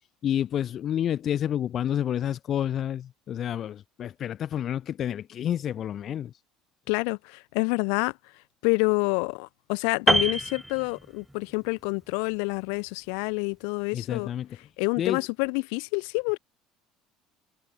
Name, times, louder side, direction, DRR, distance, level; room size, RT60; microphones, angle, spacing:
voice 1, 0.2-6.3 13.9-14.5 15.0-15.2, left 10 dB, 35° left, 2.2 m, -29 dB
voice 2, 6.9-8.1 8.6-14.3 14.8-16.4, left 40 dB or more, 90° left, 7.7 m, -27 dB
Piano, 10.1-11.5 11.8-12.0, right 1 dB, ahead, 5.0 m, -26 dB
cardioid pair, 165°, 0 cm